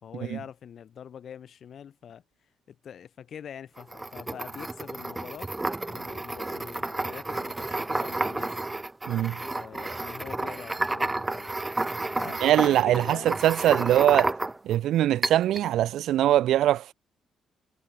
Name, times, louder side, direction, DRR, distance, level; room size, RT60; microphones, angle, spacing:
voice 1, 0.0-2.2 2.7-5.5 5.8-8.5 9.4-11.5 12.2-13.4, left 8 dB, 60° left, 4.2 m, -44 dB
sound 1, 3.8-14.8 15.2-15.7, right 2 dB, 15° right, 0.7 m, -31 dB
voice 2, 9.1-9.4 12.4-14.4 14.6-16.9, right 12 dB, 80° right, 0.3 m, -22 dB
cardioid pair, 90°, 0 cm